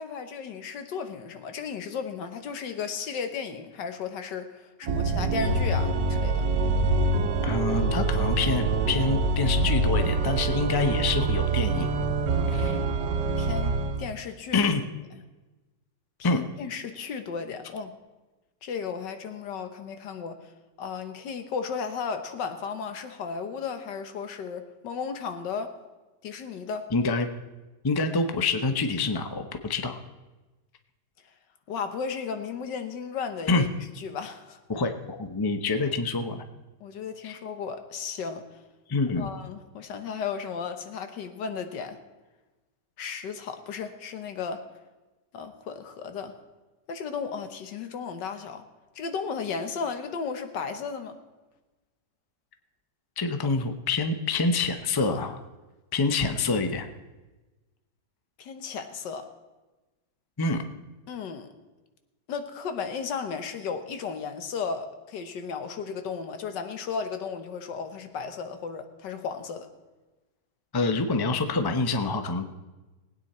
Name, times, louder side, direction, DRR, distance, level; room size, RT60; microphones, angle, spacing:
voice 1, 0.0-6.5 13.4-14.6 16.2-17.9 18.6-20.5 20.8-25.8 26.2-26.9 31.7-33.7 34.0-34.6 36.8-38.4 39.2-42.0 43.0-44.6 45.3-46.3 46.9-48.6 49.0-51.2 58.4-59.3 61.1-61.5 62.3-69.7, left 6 dB, 85° left, 8 dB, 1.7 m, -34 dB
Organ, 4.8-14.1, right 3 dB, 80° right, 1.5 m, -25 dB
voice 2, 7.4-11.9 12.5-12.8 14.5-14.8 16.2-16.4 26.9-27.3 27.8-30.0 33.5-33.6 34.7-36.4 37.2-37.4 38.9-39.3 53.2-55.4 55.9-56.9 60.4-60.6 70.7-72.5, left 3 dB, 25° left, 7 dB, 0.5 m, -26 dB
19.5 x 9.2 x 4.3 m, 1.2 s
omnidirectional pair, 1.8 m